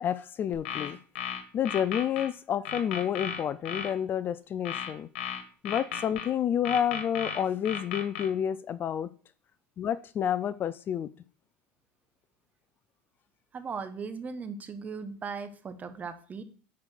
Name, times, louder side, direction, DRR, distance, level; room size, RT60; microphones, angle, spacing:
voice 1, 0.0-1.0 1.5-5.1 5.6-9.1 9.8-11.1, left 9 dB, 35° left, 15 dB, 0.4 m, -29 dB
sound 1, 0.5-2.3 2.6-3.9 4.6-6.3 6.6-8.3, left 7 dB, 90° left, 1.4 m, -35 dB
voice 2, 13.5-16.4, right 5 dB, 25° right, 9 dB, 1.1 m, -38 dB
5.7 x 4.9 x 6.3 m, 0.41 s
supercardioid pair, 110°, 6 cm